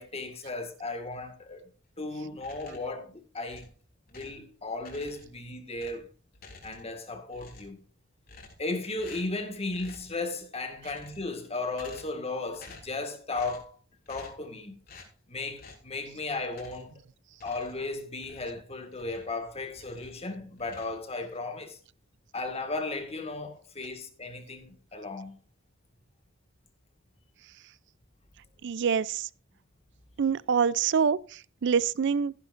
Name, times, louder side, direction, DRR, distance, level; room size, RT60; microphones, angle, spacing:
voice 1, 0.0-1.6 2.0-3.7 4.1-6.1 6.6-7.8 8.6-13.8 14.1-14.8 15.3-16.9 17.4-21.8 22.3-25.4, left 3 dB, 30° left, 1.8 m, -35 dB
sound 1, 2.4-3.0 3.5-4.5 4.8-5.4 5.7-7.0 7.3-7.8 8.3-8.7 9.0-9.4 9.7-10.2 10.7-11.3 11.7-12.3 12.5-13.0 13.3-13.7 14.1-14.5 14.9-15.1 15.6-15.9 16.5-17.0 17.3-19.4 19.7-20.2 20.6-21.4, left 3 dB, 50° left, 3.6 m, -51 dB
voice 2, 28.6-29.3 30.2-32.3, right 6 dB, 60° right, 0.4 m, -26 dB
14.5 x 11.0 x 2.5 m
head